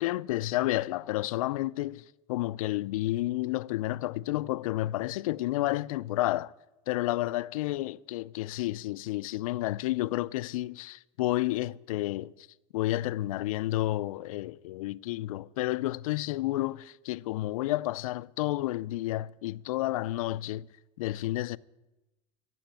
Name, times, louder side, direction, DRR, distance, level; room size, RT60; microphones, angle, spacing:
voice 1, 0.0-6.5 6.9-12.5 12.7-20.7 21.0-21.6, left 16 dB, 90° left, 0.4 m, -31 dB
15.0 x 7.7 x 9.0 m
supercardioid pair, 120°, 17 cm